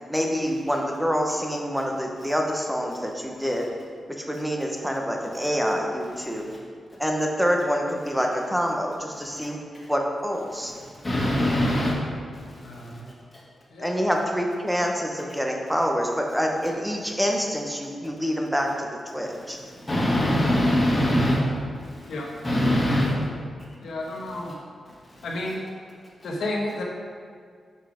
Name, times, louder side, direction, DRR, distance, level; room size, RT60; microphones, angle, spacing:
voice 1, 0.1-3.7 4.1-6.4 7.0-9.6 9.9-10.7 13.8-18.9 19.1-19.6, equal, ahead, 1 dB, 0.8 m, -26 dB
voice 2, 11.0-11.9 12.3-12.9 19.7-21.4 21.9-22.1 22.4-23.1 25.2-25.3, left 1 dB, 15° left, -7 dB, 1.9 m, -23 dB
voice 3, 12.6-13.1 13.7-13.9 22.1-22.3 23.8-24.6 25.2-25.6 26.2-26.8, left 1 dB, 85° left, -1 dB, 1.1 m, -31 dB
5.6 x 5.5 x 5.0 m, 2.1 s
wide cardioid pair, 120°, 0 cm